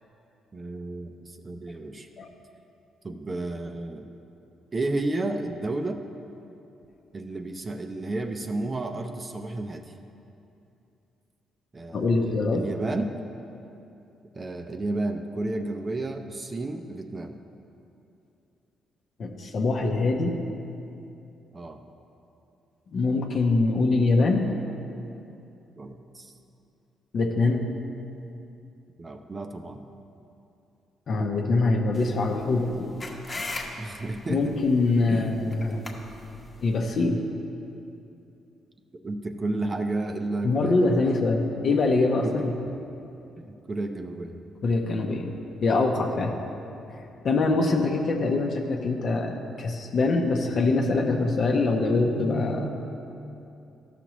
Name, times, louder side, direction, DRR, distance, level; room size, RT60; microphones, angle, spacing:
voice 1, 0.5-2.1 3.0-4.1 4.7-6.0 7.1-9.9 11.7-13.1 14.3-17.4 21.5-21.8 25.8-26.3 29.0-29.8 33.8-34.5 35.1-35.4 39.0-41.2 42.2-42.6 43.4-44.4 46.3-46.5, right 2 dB, 30° right, 5 dB, 0.5 m, -32 dB
voice 2, 11.9-12.6 19.2-20.4 22.9-24.5 27.1-27.7 31.1-32.9 34.3-35.8 36.6-37.2 40.4-42.5 44.6-45.3 45.6-46.4 46.9-52.7, left 3 dB, 55° left, 2 dB, 0.7 m, -24 dB
sound 1, 31.9-37.1, left 2 dB, 30° left, 1.0 m, -40 dB
13.0 x 5.9 x 3.0 m, 2.8 s
cardioid pair, 90°, 0 cm